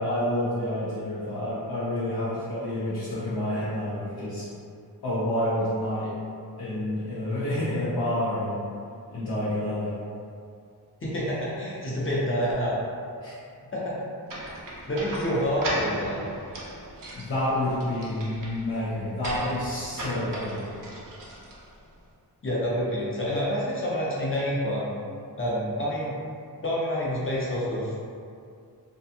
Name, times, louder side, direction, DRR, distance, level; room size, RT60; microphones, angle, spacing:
voice 1, 0.0-4.5 5.0-6.1 6.6-8.6 9.1-10.0 13.2-13.3 17.1-20.7, left 1 dB, 70° left, -11 dB, 0.7 m, -29 dB
voice 2, 11.0-12.8 13.7-13.9 14.9-16.2 22.4-24.9 25.4-26.2 26.6-28.0, equal, 30° left, -7 dB, 0.7 m, -27 dB
sound 1, 14.3-21.9, right 1 dB, 55° right, 0.6 m, -37 dB
2.5 x 2.3 x 2.7 m, 2.4 s
wide cardioid pair, 110°, 41 cm